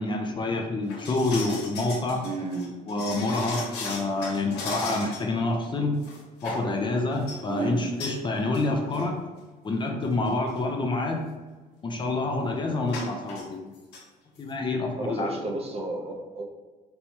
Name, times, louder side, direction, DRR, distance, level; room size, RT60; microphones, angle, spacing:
voice 1, 0.0-2.2 2.9-6.0 6.4-9.2 9.6-11.2 11.8-13.8 14.4-15.3, left 2 dB, 30° left, 1 dB, 0.5 m, -27 dB
sound 1, 0.9-5.3 5.6-5.7 6.0-6.7 7.1-7.4 8.0-8.2 8.5-8.7 8.9-9.0 9.8-9.9 10.3-10.5 12.9-13.4 13.7-14.0 14.4-14.5, left 3 dB, 90° left, 1.0 m, -37 dB
voice 2, 2.2-2.7 7.5-7.9 15.0-16.4, right 3 dB, 35° right, 2 dB, 0.6 m, -32 dB
4.3 x 2.2 x 2.8 m, 1.3 s
cardioid pair, 110°, 17 cm